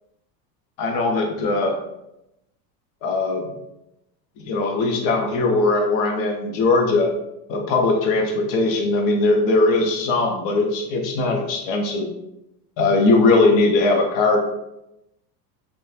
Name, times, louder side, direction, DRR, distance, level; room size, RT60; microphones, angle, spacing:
voice 1, 0.8-1.8 3.0-3.5 4.4-7.1 7.5-12.1 12.8-14.4, left 3 dB, 45° left, 2 dB, 0.6 m, -20 dB
2.8 x 2.2 x 2.3 m, 0.85 s
supercardioid pair, 130°, 49 cm